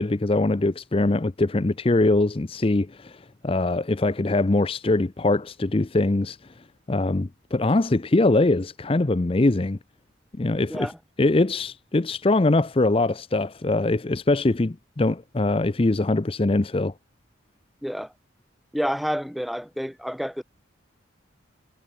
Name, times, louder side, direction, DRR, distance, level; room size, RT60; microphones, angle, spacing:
voice 1, 0.0-6.4 6.9-9.8 10.4-10.9 11.2-16.9, left 2 dB, 30° left, 0.5 m, -22 dB
voice 2, 17.8-18.1 18.7-20.4, equal, ahead, 1.4 m, -29 dB
head